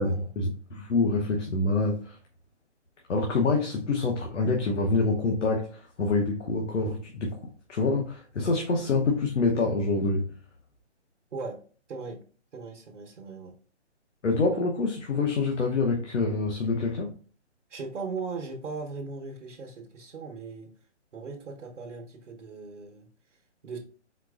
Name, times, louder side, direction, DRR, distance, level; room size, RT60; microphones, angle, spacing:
voice 1, 0.0-2.2 3.1-10.3 14.2-17.1, left 3 dB, 80° left, 0.9 m, -26 dB
voice 2, 11.3-11.6 11.9-12.2 12.5-13.5 17.7-20.7 21.1-23.8, right 4 dB, 80° right, 1.1 m, -38 dB
4.4 x 4.0 x 2.4 m
hypercardioid pair, 170°, 36 cm